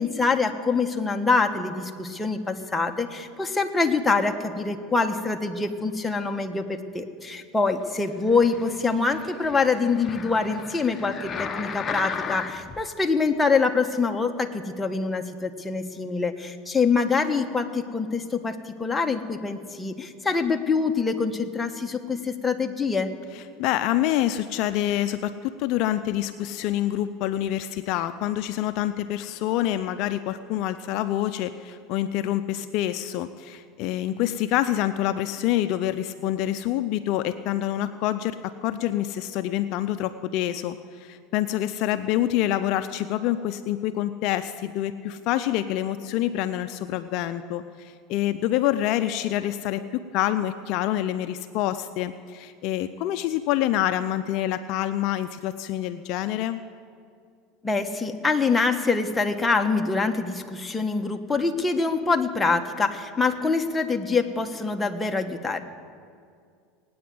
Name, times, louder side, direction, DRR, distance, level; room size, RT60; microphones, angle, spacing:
voice 1, 0.0-23.1 57.6-65.6, left 4 dB, 10° left, 3 dB, 1.3 m, -25 dB
sound 1, 8.2-12.8 13.4-13.5, left 6 dB, 30° left, 1.0 m, -35 dB
voice 2, 23.6-56.6, left 13 dB, 60° left, 11 dB, 0.5 m, -26 dB
18.0 x 9.4 x 7.8 m, 2.2 s
supercardioid pair, 100°, 0 cm